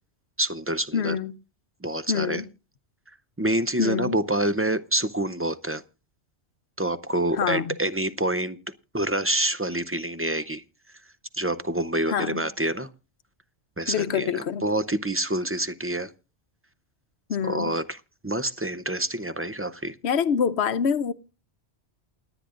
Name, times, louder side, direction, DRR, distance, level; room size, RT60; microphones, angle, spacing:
voice 1, 0.4-1.2 1.8-2.4 3.4-5.8 6.8-8.6 8.9-10.6 11.3-12.9 13.8-16.1 17.5-18.0 18.2-19.9, right 1 dB, 20° right, 0.4 m, -27 dB
voice 2, 0.9-1.4 2.1-2.4 3.8-4.2 7.3-7.8 12.1-12.5 13.9-14.7 17.3-17.8 20.0-21.1, left 7 dB, 75° left, 1.1 m, -26 dB
28.5 x 9.9 x 2.5 m
omnidirectional pair, 1.1 m